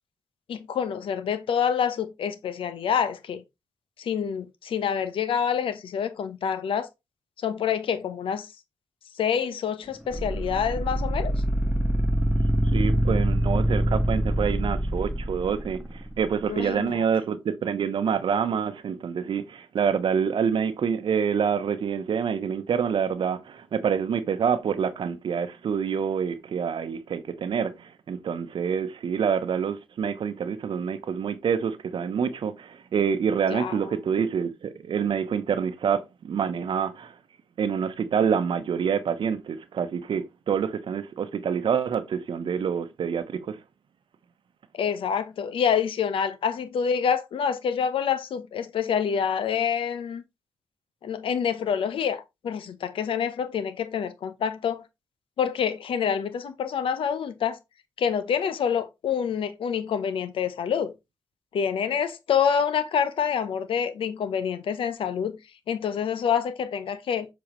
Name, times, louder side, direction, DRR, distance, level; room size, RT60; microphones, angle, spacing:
voice 1, 0.5-3.4 4.0-6.9 7.4-8.5 9.2-11.3 16.5-17.0 33.5-33.7 44.8-50.2 51.0-54.8 55.4-57.6 58.0-60.9 61.5-65.4 65.7-67.3, left 7 dB, 75° left, 0.8 m, -27 dB
sound 1, 10.1-16.3, equal, 10° right, 1.1 m, -25 dB
voice 2, 12.7-37.1 37.6-43.6, right 7 dB, 65° right, 0.8 m, -27 dB
7.2 x 4.2 x 3.1 m
supercardioid pair, 45°, 9 cm